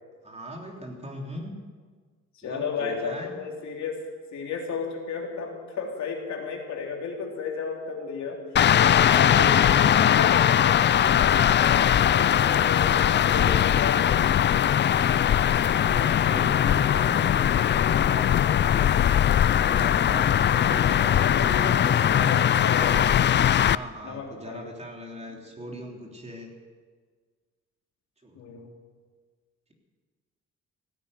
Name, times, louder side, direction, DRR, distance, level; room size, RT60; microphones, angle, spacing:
voice 1, 0.2-1.5 2.4-3.4 15.5-17.5 17.9-18.9 19.4-22.9 23.6-26.5 28.2-28.4, equal, 20° right, 0 dB, 3.4 m, -39 dB
voice 2, 2.3-4.0 4.3-8.4 8.7-14.5 21.1-23.2 24.0-24.7 28.3-28.7, left 5 dB, 65° left, 0 dB, 3.3 m, -33 dB
sound 1, 8.6-23.8, left 10 dB, 40° left, 0.4 m, -20 dB
16.5 x 9.7 x 8.3 m, 1.5 s
cardioid pair, 90°, 30 cm